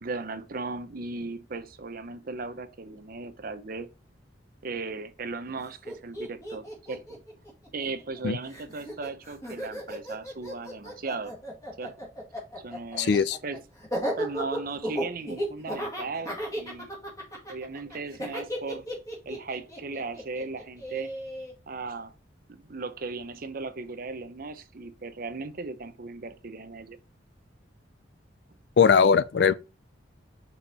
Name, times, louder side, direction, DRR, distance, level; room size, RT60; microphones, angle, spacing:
voice 1, 0.0-3.9 4.6-7.2 7.7-11.4 11.8-12.0 12.6-13.6 14.2-16.9 17.5-18.8 19.3-21.1 21.7-22.1 22.5-27.0, right 3 dB, 50° right, 0.7 m, -37 dB
Laughter, 5.6-5.7 5.8-8.2 8.5-21.5, equal, 20° left, 2.1 m, -35 dB
voice 2, 13.0-13.4 28.8-29.5, left 6 dB, 60° left, 0.4 m, -20 dB
5.3 x 4.4 x 4.2 m
head